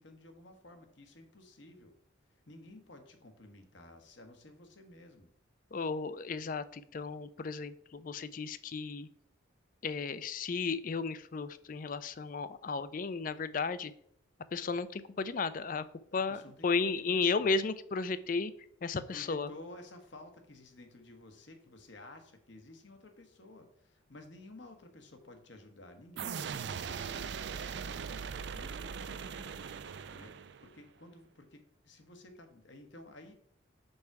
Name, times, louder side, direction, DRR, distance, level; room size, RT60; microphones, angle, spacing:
voice 1, 0.0-1.9 2.3-5.3 16.1-17.5 18.9-28.1 28.5-29.6 30.1-33.3, left 1 dB, 65° left, 5 dB, 1.2 m, -53 dB
voice 2, 5.7-9.1 9.8-13.9 14.5-15.8 16.1-18.5 18.8-19.5, left 4 dB, 45° left, 14 dB, 0.4 m, -34 dB
sound 1, 26.2-30.8, right 6 dB, 55° right, 0.4 m, -40 dB
5.3 x 4.6 x 6.0 m, 0.69 s
head